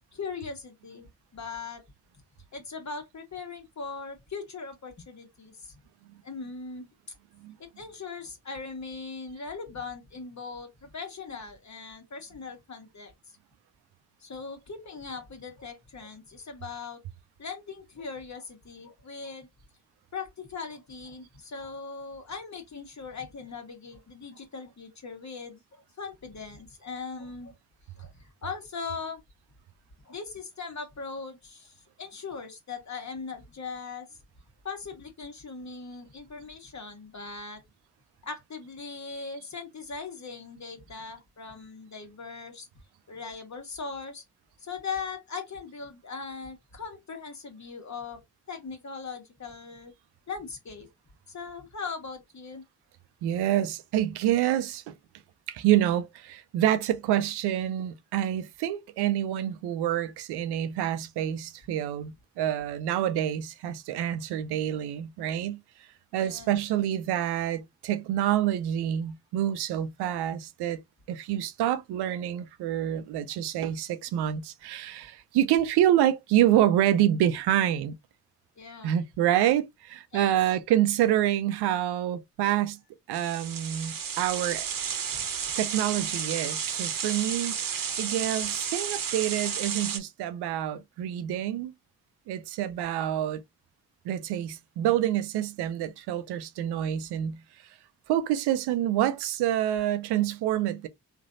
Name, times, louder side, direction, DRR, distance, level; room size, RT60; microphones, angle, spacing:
voice 1, 0.0-1.8 2.5-5.8 6.2-6.9 7.6-13.1 14.2-17.0 17.4-19.5 20.1-27.5 28.0-29.2 30.0-34.2 34.6-37.6 38.2-42.7 43.1-44.2 44.6-49.9 50.3-50.9 51.3-52.6 66.2-66.5 78.6-79.0 80.1-80.3 85.1-85.3, left 5 dB, 45° left, 1.3 m, -40 dB
voice 2, 53.2-54.9 55.5-65.6 66.1-70.8 71.1-77.9 78.8-82.8 83.1-84.7 85.6-91.7 92.3-93.4 94.0-97.4 98.1-100.9, right 12 dB, 90° right, 0.5 m, -27 dB
sound 1, 83.1-90.0, right 7 dB, 55° right, 0.8 m, -32 dB
3.2 x 2.5 x 2.5 m
supercardioid pair, 45°, 39 cm